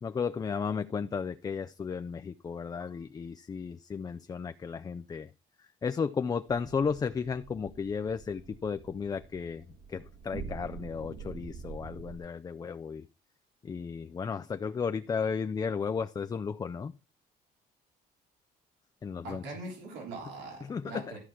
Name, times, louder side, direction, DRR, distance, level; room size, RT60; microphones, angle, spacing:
voice 1, 0.0-5.3 5.8-13.1 13.6-16.9 19.0-19.4 20.6-21.2, left 6 dB, 25° left, 0.4 m, -34 dB
sound 1, 6.5-12.2, right 5 dB, 65° right, 1.6 m, -46 dB
voice 2, 19.2-21.2, right 2 dB, 85° right, 3.4 m, -42 dB
13.0 x 4.8 x 5.8 m
cardioid pair, 110°, 17 cm